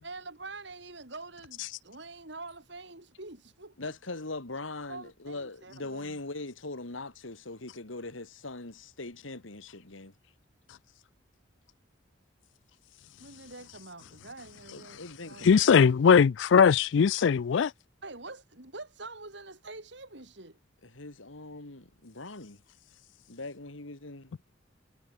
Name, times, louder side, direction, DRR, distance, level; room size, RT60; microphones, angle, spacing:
voice 1, 0.0-3.9 4.9-6.2 13.2-15.9 18.0-20.6, right 3 dB, 60° right, 4.1 m, -46 dB
voice 2, 3.8-10.1 14.7-15.8 20.8-22.6 23.3-24.3, left 2 dB, 85° left, 2.5 m, -41 dB
voice 3, 15.4-17.7, left 6 dB, 70° left, 0.4 m, -20 dB
head